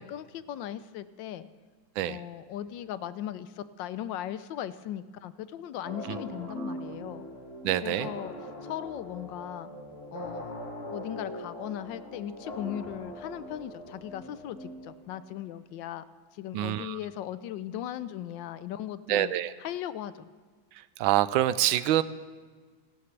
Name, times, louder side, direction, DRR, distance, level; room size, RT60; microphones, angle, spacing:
voice 1, 0.0-1.5 2.0-7.3 7.8-8.3 8.6-9.7 10.1-10.5 10.9-16.0 16.3-19.3 19.6-20.3, left 11 dB, 75° left, 14 dB, 1.2 m, -38 dB
sound 1, 5.8-15.3, left 1 dB, 30° left, 2.3 m, -41 dB
voice 2, 7.6-8.1 16.5-17.0 19.1-19.5 21.0-22.0, right 13 dB, 85° right, 15 dB, 1.4 m, -26 dB
28.5 x 12.5 x 3.3 m, 1.5 s
omnidirectional pair, 2.1 m